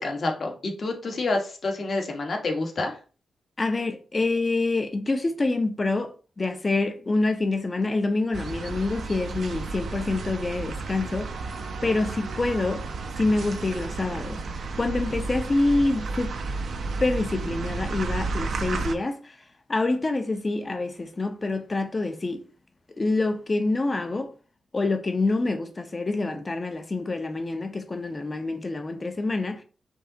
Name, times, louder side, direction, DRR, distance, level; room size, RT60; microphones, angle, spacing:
voice 1, 0.0-3.0, left 2 dB, 55° left, 1.2 m, -28 dB
voice 2, 3.6-6.1 6.4-11.3 11.8-12.8 13.2-14.4 14.8-16.3 17.0-19.3 19.7-22.4 23.0-24.3 24.7-29.6, left 2 dB, 30° left, 0.7 m, -26 dB
sound 1, 8.3-18.9, right 4 dB, 70° right, 0.6 m, -32 dB
5.3 x 2.5 x 3.9 m
wide cardioid pair, 105°, 0 cm